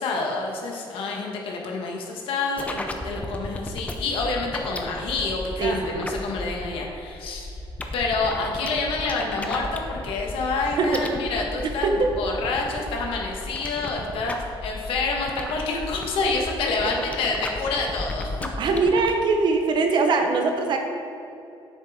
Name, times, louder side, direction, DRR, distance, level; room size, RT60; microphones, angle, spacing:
voice 1, 0.0-7.6 7.9-18.3, left 3 dB, 80° left, 0 dB, 1.3 m, -28 dB
sound 1, 2.6-19.1, left 2 dB, 15° left, 0.6 m, -34 dB
voice 2, 5.6-6.1 10.8-11.0 11.3-11.4 11.8-12.1 18.6-20.8, right 3 dB, 55° right, 4 dB, 0.9 m, -22 dB
7.5 x 6.7 x 3.6 m, 2.7 s
cardioid pair, 130°, 9 cm